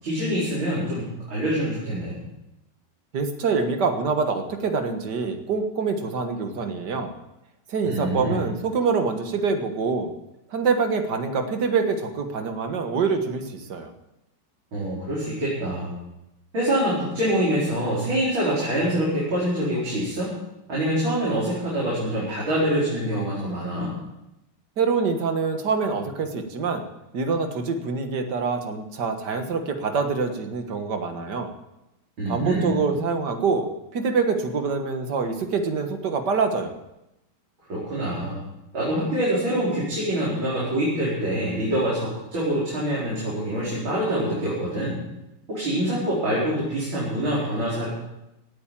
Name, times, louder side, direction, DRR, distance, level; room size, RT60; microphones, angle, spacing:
voice 1, 0.0-2.2 7.8-8.4 14.7-16.0 16.5-20.3 20.7-23.9 32.2-32.8 37.7-38.4 38.7-45.0 45.5-47.9, right 1 dB, 80° right, -8 dB, 5.6 m, -25 dB
voice 2, 3.1-7.1 7.7-10.1 10.5-13.9 24.8-26.9 27.1-31.5 32.3-33.7 33.9-36.7, right 5 dB, 60° right, 6 dB, 2.0 m, -25 dB
17.5 x 8.8 x 7.4 m, 0.91 s
omnidirectional pair, 2.2 m